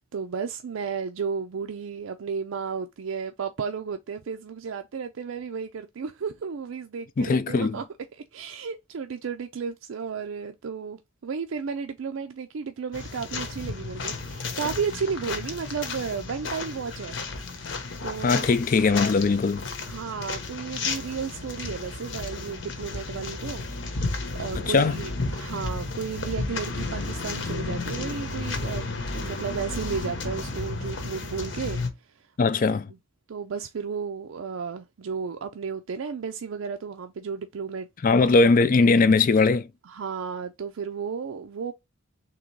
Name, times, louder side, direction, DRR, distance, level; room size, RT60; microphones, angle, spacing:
voice 1, 0.0-7.8 8.3-17.2 17.5-17.7 18.0-18.4 19.8-24.1 24.4-32.3 32.6-32.8 33.3-37.9 39.9-41.7, right 6 dB, 85° right, 0.4 m, -33 dB
voice 2, 7.2-7.8 18.2-19.6 24.6-25.0 32.4-32.9 38.0-39.7, left 4 dB, 45° left, 0.4 m, -20 dB
sound 1, 12.9-31.9, left 3 dB, 65° left, 1.0 m, -33 dB
3.7 x 3.0 x 4.5 m
head